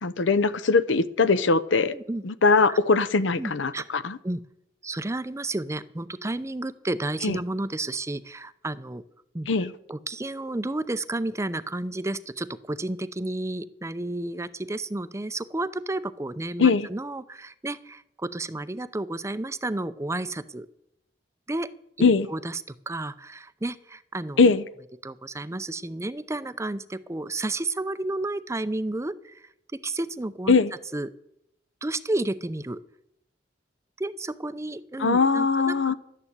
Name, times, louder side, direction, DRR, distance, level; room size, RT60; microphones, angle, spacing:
voice 1, 0.0-1.9 2.2-4.2 7.2-7.4 9.5-9.7 16.6-16.9 22.0-22.3 24.4-24.6 30.5-30.7 35.0-35.9, left 4 dB, 80° left, 15 dB, 0.7 m, -21 dB
voice 2, 3.4-3.9 4.2-4.4 4.8-9.0 9.3-9.5 9.9-20.7 21.5-21.7 22.3-24.4 25.0-30.6 30.9-31.1 31.8-32.8 34.0-35.9, right 2 dB, 15° right, 14 dB, 0.5 m, -31 dB
12.5 x 9.9 x 8.0 m, 0.76 s
head